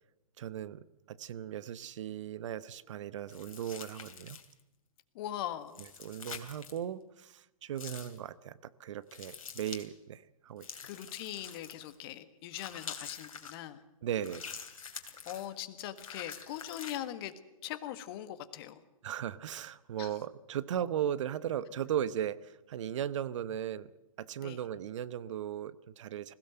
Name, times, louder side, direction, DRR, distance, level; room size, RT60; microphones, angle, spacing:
voice 1, 0.4-4.4 6.0-10.7 14.0-14.6 19.0-23.9 24.2-26.3, right 10 dB, 55° right, 17 dB, 0.9 m, -37 dB
sound 1, 3.3-4.6 5.7-6.8 7.8-8.2 9.1-9.9 10.6-11.9 12.5-13.5 14.2-15.5 16.0-17.0, left 6 dB, 70° left, 2.8 m, -46 dB
voice 2, 5.1-5.8 10.8-13.8 15.3-17.3 17.6-18.7 20.0-20.1 24.4-24.6, left 12 dB, 40° left, 10 dB, 1.6 m, -41 dB
21.0 x 16.5 x 7.8 m, 0.98 s
figure-of-eight pair, 120°, 18 cm